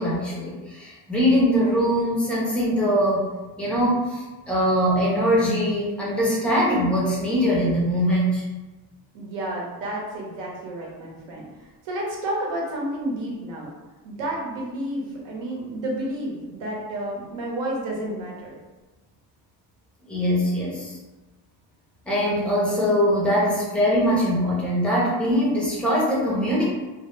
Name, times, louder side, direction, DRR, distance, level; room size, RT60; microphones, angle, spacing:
voice 1, 0.0-3.3 3.6-8.4 20.1-21.0 22.1-26.6, equal, 5° left, -6 dB, 0.3 m, -22 dB
voice 2, 9.1-13.7 14.0-18.5, right 1 dB, 90° right, -2 dB, 0.9 m, -31 dB
2.0 x 2.0 x 3.0 m, 1.2 s
cardioid pair, 170°, 42 cm